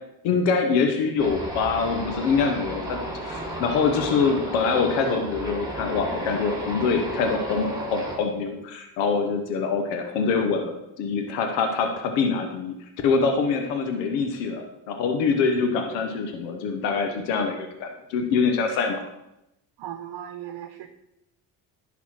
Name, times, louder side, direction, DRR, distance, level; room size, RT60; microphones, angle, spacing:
voice 1, 0.2-10.7 11.0-19.0, left 5 dB, 85° left, 5 dB, 1.1 m, -24 dB
sound 1, 1.2-8.2, right 1 dB, 10° right, 2.5 m, -33 dB
voice 2, 19.8-20.9, right 10 dB, 65° right, 7 dB, 0.9 m, -37 dB
10.5 x 4.1 x 5.7 m, 0.86 s
supercardioid pair, 65°, 43 cm